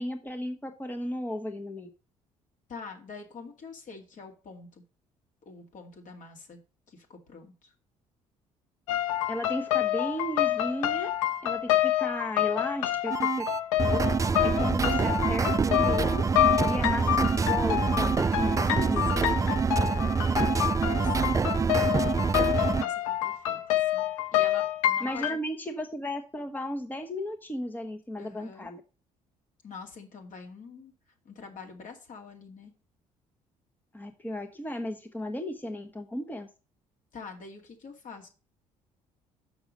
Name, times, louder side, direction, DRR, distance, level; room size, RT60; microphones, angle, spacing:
voice 1, 0.0-1.9 9.3-11.1 11.4-13.5 13.9-14.2 14.4-16.2 16.7-19.1 25.0-28.8 33.9-36.5, equal, 10° left, 6 dB, 1.1 m, -35 dB
voice 2, 2.7-4.8 5.5-6.6 6.9-7.7 19.1-22.3 22.6-25.4 28.2-28.7 29.6-30.9 31.2-32.7 37.1-38.3, left 4 dB, 50° left, 2 dB, 2.2 m, -46 dB
sound 1, 8.9-25.4, left 13 dB, 80° left, 0.5 m, -28 dB
sound 2, 13.1-22.8, right 5 dB, 20° right, 0.4 m, -26 dB
6.4 x 6.1 x 5.1 m, 0.34 s
hypercardioid pair, 55°, 17 cm